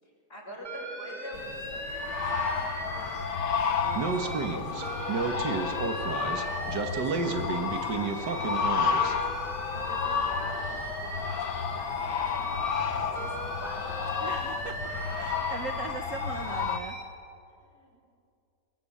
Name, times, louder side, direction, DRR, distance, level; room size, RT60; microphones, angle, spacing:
voice 1, 0.0-3.1 3.8-14.3 17.5-18.1, equal, 35° left, -3 dB, 7.1 m, -46 dB
Alarm, 0.6-4.5 4.8-8.7 9.0-12.9 13.1-17.0, right 1 dB, 25° right, 3.3 m, -39 dB
sound 1, 1.3-16.8, left 6 dB, 80° left, 1.8 m, -31 dB
voice 2, 3.8-4.6 14.2-17.0, right 4 dB, 55° right, 6 dB, 1.3 m, -40 dB
Speech, 3.9-9.1, right 4 dB, 80° right, 2.2 m, -31 dB
25.5 x 22.5 x 8.7 m, 2.5 s
omnidirectional pair, 1.8 m